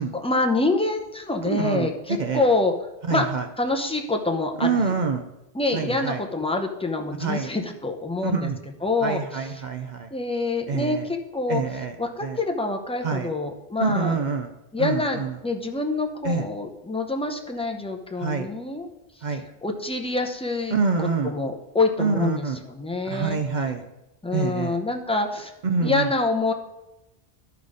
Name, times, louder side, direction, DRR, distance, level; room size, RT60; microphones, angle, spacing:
voice 1, 0.1-2.7 3.1-3.3 3.6-5.0 5.5-8.5 8.8-9.5 10.1-14.2 14.7-18.9 19.6-23.4 24.2-25.5 25.8-26.5, left 2 dB, 5° left, 3 dB, 0.6 m, -26 dB
voice 2, 1.5-1.9 2.2-2.4 3.1-3.5 4.6-5.2 5.7-6.2 7.2-7.5 8.2-8.6 9.0-10.1 10.7-11.1 11.5-12.0 12.2-12.4 13.0-13.3 13.8-14.5 14.8-15.4 16.2-16.5 18.2-18.5 19.2-19.5 20.7-21.3 22.0-22.6 23.0-23.8 24.3-24.8 25.6-26.1, right 5 dB, 55° right, 6 dB, 0.7 m, -26 dB
11.5 x 4.0 x 4.9 m, 0.95 s
omnidirectional pair, 1.1 m